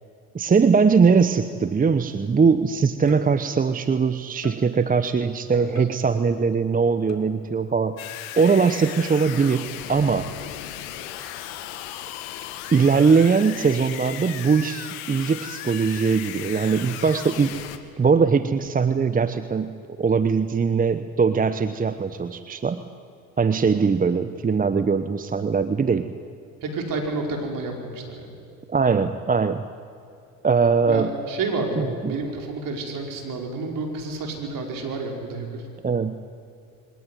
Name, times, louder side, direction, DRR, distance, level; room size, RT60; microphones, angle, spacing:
voice 1, 0.3-8.0 8.4-10.3 12.7-17.5 18.0-22.8 23.4-26.1 28.7-29.7 30.4-31.1 31.8-32.2 35.8-36.1, right 5 dB, 20° right, 12 dB, 0.9 m, -21 dB
sound 1, 3.1-3.7 4.4-5.0 5.8-6.4 7.1-7.8 8.5-9.0, left 6 dB, 40° left, 2.8 m, -44 dB
sound 2, 8.0-17.8, left 12 dB, 75° left, 1.7 m, -36 dB
voice 2, 26.6-28.3 30.9-35.6, right 3 dB, 50° right, 2 dB, 5.3 m, -30 dB
23.0 x 19.0 x 9.6 m, 2.6 s
hypercardioid pair, 75°, 41 cm